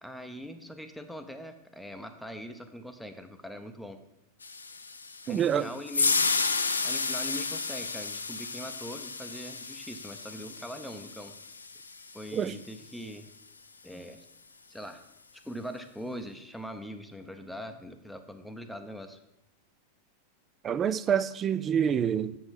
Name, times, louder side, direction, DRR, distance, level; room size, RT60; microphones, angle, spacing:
voice 1, 0.0-4.0 5.2-6.3 6.8-11.3 12.1-13.3 13.8-14.3 14.7-15.0 15.4-19.2, equal, ahead, 0.7 m, -42 dB
sound 1, 4.4-12.7, left 4 dB, 75° left, 0.5 m, -32 dB
voice 2, 5.3-5.7 12.3-12.5 20.6-22.4, right 8 dB, 25° right, 0.4 m, -27 dB
7.3 x 6.3 x 4.7 m
figure-of-eight pair, 90°, 0 cm